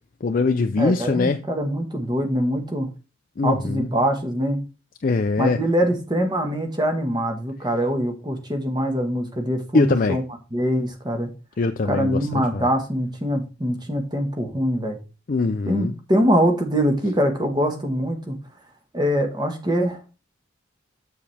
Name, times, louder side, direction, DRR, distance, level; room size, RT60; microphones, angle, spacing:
voice 1, 0.2-1.4 3.4-3.8 5.0-5.6 9.7-10.2 11.6-12.2 12.5-12.6 15.3-15.9, left 3 dB, 40° left, 0.4 m, -21 dB
voice 2, 0.7-2.9 3.4-4.6 5.4-10.2 10.5-11.3 11.8-15.0 15.7-18.4 18.9-20.0, equal, 20° right, 1.4 m, -23 dB
7.2 x 7.0 x 3.4 m
head